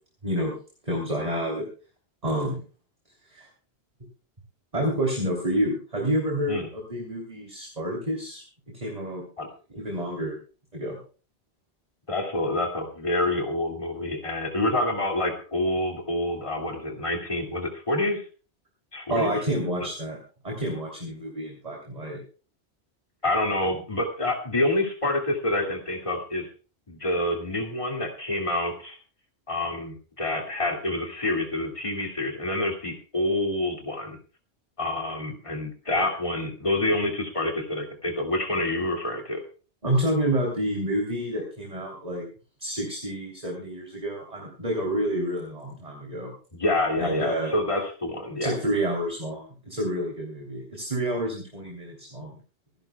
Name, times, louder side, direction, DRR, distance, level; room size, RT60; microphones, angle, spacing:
voice 1, 0.2-0.5 0.8-1.7 2.2-2.6 3.3-3.5 4.7-8.4 8.8-9.2 9.7-10.4 10.7-11.0 19.1-20.2 20.4-22.2 39.8-42.2 42.6-46.3 47.0-47.5 48.4-52.4, right 1 dB, 35° right, 0 dB, 3.6 m, -29 dB
voice 2, 12.1-18.2 18.9-19.3 23.2-26.5 26.9-29.0 29.5-34.2 34.8-39.4 46.5-48.5, left 1 dB, 30° left, 1 dB, 2.5 m, -27 dB
26.0 x 12.0 x 2.4 m, 0.37 s
omnidirectional pair, 1.1 m